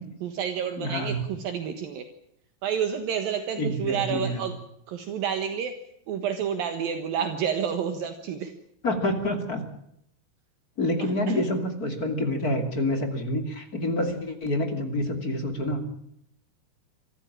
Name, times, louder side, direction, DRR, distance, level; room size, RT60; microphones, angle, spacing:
voice 1, 0.2-2.0 2.6-4.5 4.9-5.7 6.1-8.5 11.3-11.4, right 8 dB, 70° right, 8 dB, 3.2 m, -29 dB
voice 2, 0.8-1.3 3.6-4.5 8.8-9.6 10.8-16.0, left 1 dB, 25° left, 6 dB, 2.8 m, -27 dB
25.5 x 15.0 x 8.7 m, 0.73 s
omnidirectional pair, 4.4 m